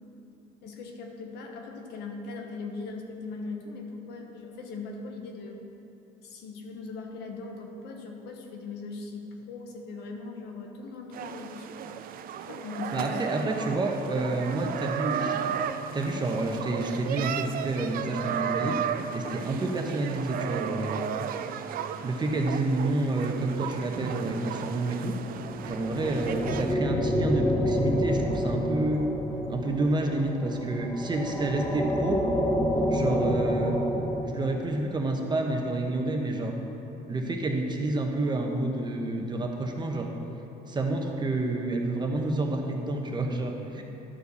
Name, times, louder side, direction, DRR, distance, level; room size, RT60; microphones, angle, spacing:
voice 1, 0.6-5.6 6.2-11.7 12.5-13.6 43.8-43.9, left 3 dB, 80° left, 2 dB, 1.2 m, -39 dB
sound 1, 11.1-26.7, right 8 dB, 60° right, 0.5 m, -34 dB
voice 2, 12.9-15.5 15.9-18.8 19.1-21.0 22.0-25.1 25.6-29.1 29.5-32.2 32.9-33.8 34.2-36.5 37.1-40.1 40.7-43.8, right 2 dB, 25° right, 2 dB, 1.1 m, -29 dB
sound 2, 25.4-34.2, equal, 15° left, 1.1 m, -28 dB
11.5 x 4.6 x 6.9 m, 2.9 s
cardioid pair, 110°, 17 cm